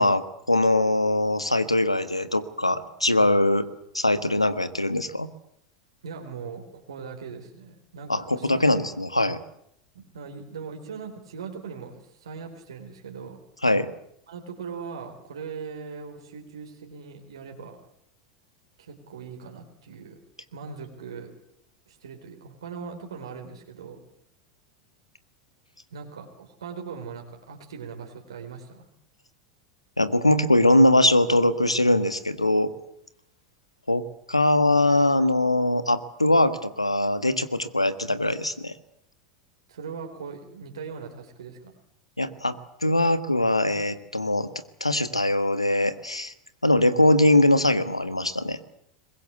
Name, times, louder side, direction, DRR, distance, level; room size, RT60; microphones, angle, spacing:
voice 1, 0.0-3.6 3.9-5.3 8.1-9.4 13.6-13.9 30.0-32.7 33.9-34.0 34.3-38.7 42.2-42.5 42.8-44.5 44.8-46.3 46.6-48.6, left 1 dB, 85° left, 14 dB, 1.5 m, -22 dB
voice 2, 6.0-8.7 9.9-13.4 14.3-17.8 18.8-20.2 20.5-21.3 21.9-24.0 25.9-28.9 39.7-41.7, right 5 dB, 70° right, 2 dB, 3.9 m, -40 dB
23.5 x 21.5 x 8.1 m, 0.74 s
figure-of-eight pair, 80°, 3 cm